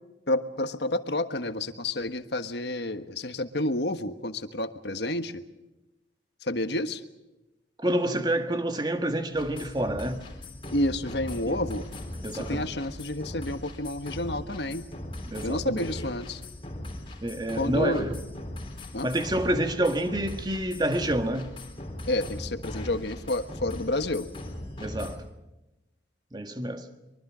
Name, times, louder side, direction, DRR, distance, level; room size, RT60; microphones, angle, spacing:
voice 1, 0.3-5.4 6.4-7.0 10.7-11.9 12.3-14.8 15.4-16.4 17.5-18.1 18.9-19.1 22.1-24.3, left 1 dB, 70° left, 1.4 m, -30 dB
voice 2, 7.8-10.2 11.5-11.6 12.2-12.7 15.3-15.9 17.2-18.2 19.0-21.5 24.8-25.2 26.3-26.9, right 1 dB, 25° right, 1.7 m, -28 dB
sound 1, 9.3-25.2, left 1 dB, 30° left, 3.5 m, -39 dB
24.0 x 23.5 x 6.3 m
head